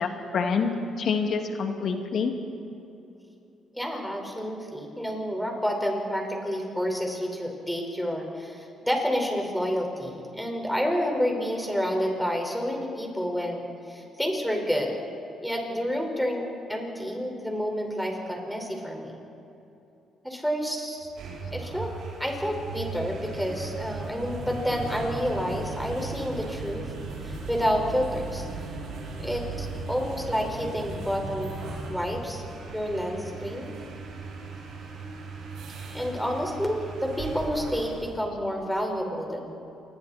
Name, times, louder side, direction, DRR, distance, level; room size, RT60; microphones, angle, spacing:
voice 1, 0.0-2.3, left 5 dB, 65° left, 4 dB, 2.4 m, -27 dB
voice 2, 3.7-14.9 15.4-19.2 20.2-21.1 21.5-21.9 22.2-26.9 27.2-28.5 29.2-31.5 31.9-33.7 35.9-39.4, equal, ahead, 1 dB, 5.0 m, -29 dB
sound 1, 21.0-38.2, right 3 dB, 75° right, 6.6 m, -37 dB
28.0 x 22.0 x 4.4 m, 2.8 s
cardioid pair, 90°, 0 cm